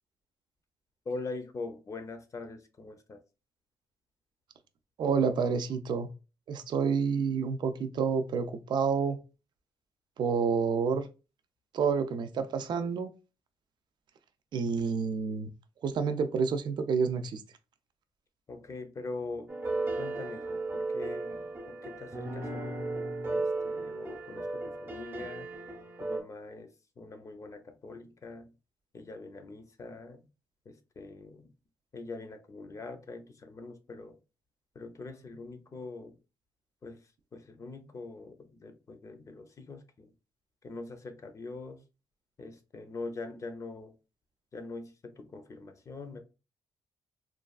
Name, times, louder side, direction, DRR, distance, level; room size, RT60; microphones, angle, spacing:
voice 1, 1.0-3.2 18.5-19.5 20.0-22.9 23.3-25.5 26.0-28.5 28.9-30.3 30.7-31.5 31.9-34.2 34.7-36.2 36.8-40.1 40.6-41.8 42.4-43.9 44.5-46.2, left 3 dB, 35° left, 0.6 m, -43 dB
voice 2, 5.0-6.1 6.5-9.2 10.2-11.1 11.7-13.1 14.5-15.5 15.8-17.4, right 5 dB, 60° right, 0.4 m, -29 dB
sound 1, 19.5-26.2, right 2 dB, 25° right, 0.7 m, -35 dB
3.1 x 2.3 x 2.3 m
cardioid pair, 80°, 9 cm